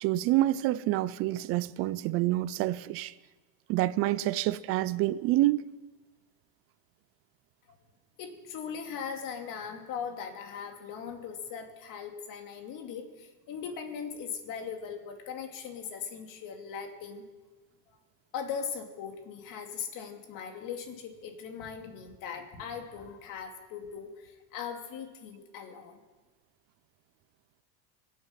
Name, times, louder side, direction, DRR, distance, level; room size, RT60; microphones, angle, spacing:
voice 1, 0.0-3.1 3.7-5.6, right 16 dB, 30° right, 0.4 m, -27 dB
voice 2, 8.2-17.2 18.3-26.0, left 7 dB, 40° left, 2.6 m, -39 dB
23.5 x 8.5 x 5.8 m
supercardioid pair, 140°, 48 cm